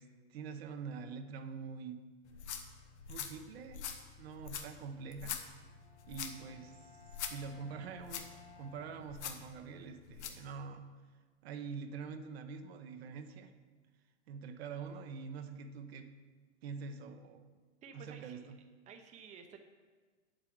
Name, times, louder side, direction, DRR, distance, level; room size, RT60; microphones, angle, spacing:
voice 1, 0.0-2.1 3.1-5.4 6.1-8.3 8.6-10.9 11.4-13.5 14.3-16.2 16.6-17.5 17.9-18.6, right 5 dB, 60° right, 0.9 m, -45 dB
sound 1, 2.3-10.5, left 7 dB, 75° left, 1.2 m, -45 dB
Bowed string instrument, 5.6-9.7, left 6 dB, 45° left, 2.1 m, -59 dB
voice 2, 17.8-18.5 18.9-19.6, right 6 dB, 20° right, 0.8 m, -53 dB
9.4 x 7.8 x 4.6 m
hypercardioid pair, 120°, 34 cm